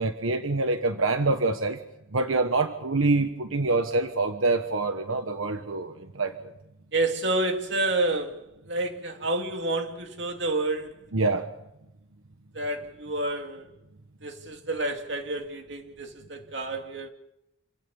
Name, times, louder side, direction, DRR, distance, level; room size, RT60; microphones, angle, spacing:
voice 1, 0.0-1.8 2.1-6.3 11.1-11.5, right 3 dB, 90° right, 1.3 m, -25 dB
voice 2, 6.9-11.0 12.5-13.7 14.2-17.1, right 2 dB, 60° right, 2.7 m, -29 dB
28.0 x 17.5 x 7.1 m
head